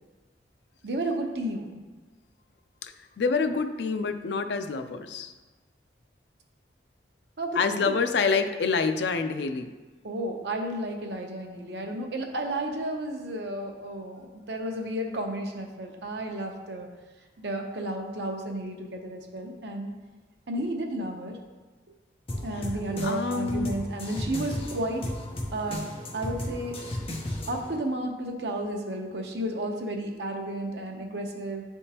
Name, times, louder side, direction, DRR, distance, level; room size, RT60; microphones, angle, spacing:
voice 1, 0.8-1.8 7.4-7.6 7.9-8.0 10.0-16.9 17.4-19.9 20.5-21.4 22.4-25.1 25.5-26.8 27.5-31.6, right 1 dB, 80° right, 2 dB, 0.8 m, -32 dB
voice 2, 2.8-5.3 7.5-9.7 23.0-23.8, left 4 dB, 80° left, 9 dB, 0.4 m, -27 dB
sound 1, 22.3-27.8, left 1 dB, 30° left, 0.7 m, -35 dB
9.9 x 3.5 x 2.8 m, 1.3 s
head